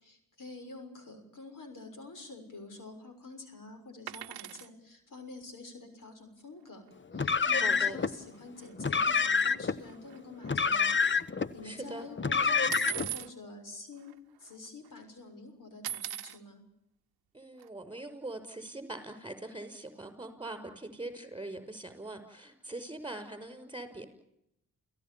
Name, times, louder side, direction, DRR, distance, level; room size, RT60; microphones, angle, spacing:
voice 1, 0.0-6.9 7.1-11.2 11.5-16.6, left 3 dB, 55° left, 7 dB, 6.5 m, -48 dB
sound 1, 4.1-4.7 6.9-7.0 7.2-7.4 7.7-7.8 8.6-8.7 9.2-11.3 12.7-13.3 14.1-14.2 14.4-14.9 15.8-16.4 17.6-17.7, right 14 dB, 75° right, 0.8 m, -40 dB
Car, 7.1-8.1 8.8-9.8 10.4-11.5 12.2-13.1, left 5 dB, 30° left, 1.1 m, -27 dB
voice 2, 7.5-8.0 11.6-12.1 17.3-24.1, right 2 dB, 15° right, 9 dB, 6.0 m, -42 dB
29.5 x 16.5 x 7.2 m, 0.81 s
supercardioid pair, 50°, 37 cm